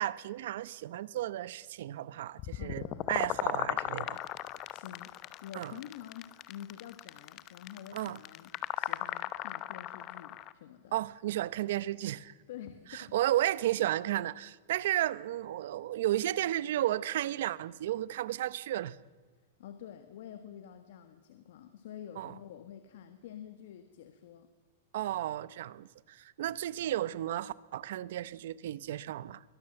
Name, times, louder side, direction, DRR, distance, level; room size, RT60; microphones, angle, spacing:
voice 1, 0.0-4.2 5.5-5.7 7.9-8.2 10.9-12.3 12.9-19.0 22.2-22.3 24.9-29.4, right 13 dB, 60° right, 0.8 m, -33 dB
sound 1, 2.4-10.5, left 14 dB, 25° left, 0.7 m, -36 dB
voice 2, 2.5-3.0 4.7-5.1 5.4-10.9 12.5-13.1 19.6-24.5, left 10 dB, 60° left, 1.6 m, -48 dB
23.0 x 18.0 x 7.8 m
supercardioid pair, 165°, 0 cm